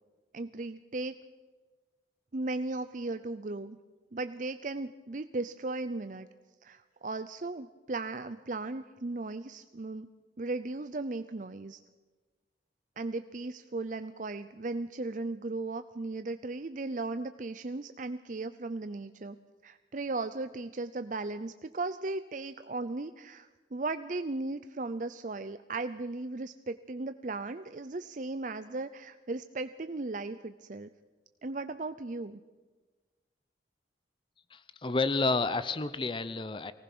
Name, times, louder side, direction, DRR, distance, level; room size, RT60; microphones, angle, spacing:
voice 1, 0.3-1.1 2.3-3.8 4.1-6.3 6.6-10.1 10.4-11.8 13.0-19.4 19.6-30.9 31.4-32.4, right 2 dB, 45° right, 10 dB, 0.6 m, -36 dB
voice 2, 34.5-36.7, left 3 dB, 25° left, 13 dB, 0.6 m, -30 dB
24.0 x 18.5 x 6.1 m, 1.3 s
head